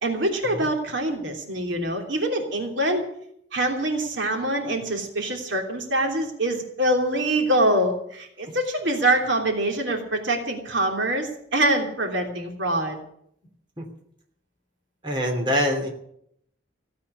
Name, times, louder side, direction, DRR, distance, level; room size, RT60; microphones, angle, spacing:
voice 1, 0.0-3.0 3.5-13.0, right 1 dB, 70° right, 3 dB, 3.0 m, -24 dB
voice 2, 15.0-15.9, equal, 25° right, 2 dB, 3.0 m, -24 dB
16.0 x 8.4 x 9.8 m, 0.70 s
head